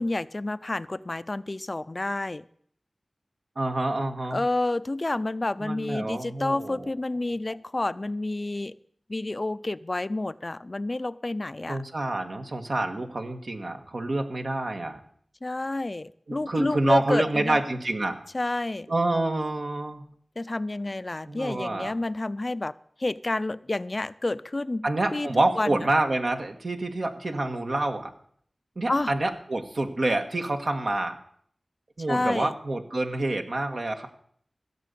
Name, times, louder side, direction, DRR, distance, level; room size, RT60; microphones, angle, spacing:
voice 1, 0.0-2.4 4.3-8.8 9.1-11.8 15.4-17.6 18.3-18.9 20.4-22.7 23.0-25.3 25.6-25.9 28.9-29.1 32.1-32.5, left 2 dB, 45° left, 16 dB, 0.4 m, -29 dB
voice 2, 3.5-4.4 5.6-6.9 11.7-15.0 16.3-18.2 18.9-20.0 21.2-21.9 24.8-28.1 28.7-31.2 32.0-34.1, right 2 dB, 70° right, 4 dB, 1.6 m, -27 dB
15.5 x 6.9 x 8.4 m, 0.62 s
wide cardioid pair, 50°, 0 cm